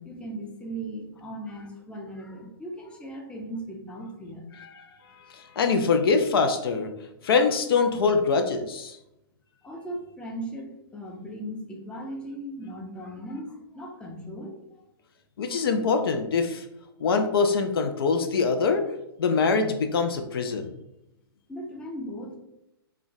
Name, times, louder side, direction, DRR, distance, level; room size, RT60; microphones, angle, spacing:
voice 1, 0.0-4.5 7.3-7.5 9.6-14.6 15.5-15.6 21.5-22.4, right 1 dB, 10° left, 0 dB, 0.5 m, -38 dB
voice 2, 5.3-6.9 7.2-9.0 15.4-16.7 17.0-18.8 19.2-20.7, left 4 dB, 70° left, 5 dB, 0.4 m, -24 dB
2.2 x 2.1 x 3.8 m, 0.86 s
hypercardioid pair, 120°, 13 cm